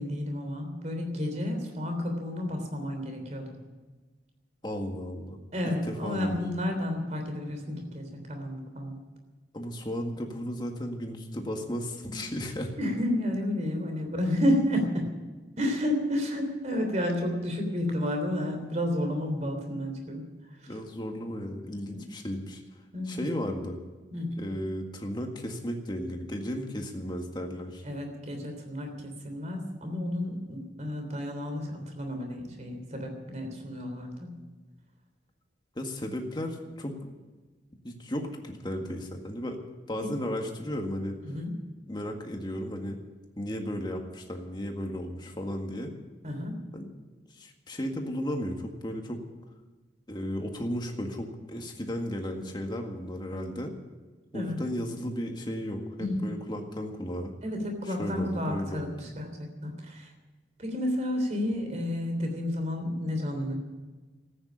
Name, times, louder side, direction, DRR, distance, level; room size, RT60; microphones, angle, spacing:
voice 1, 0.0-3.5 5.5-9.0 12.1-12.2 12.8-15.1 15.6-20.2 20.6-20.7 21.9-22.0 22.9-23.2 24.1-24.4 27.8-34.4 41.2-41.5 46.2-46.6 54.3-54.6 56.0-56.2 57.4-60.1 60.6-63.5, left 1 dB, 40° right, 4 dB, 3.3 m, -31 dB
voice 2, 4.6-5.4 5.6-6.5 9.5-12.7 20.7-22.6 23.0-23.8 24.4-27.8 35.7-37.1 37.8-39.6 39.9-41.2 41.9-43.0 43.4-45.9 46.7-46.9 47.3-49.2 50.1-53.7 54.3-57.3 58.0-59.1, equal, 25° left, 3 dB, 1.8 m, -34 dB
14.0 x 9.6 x 10.0 m, 1.3 s
head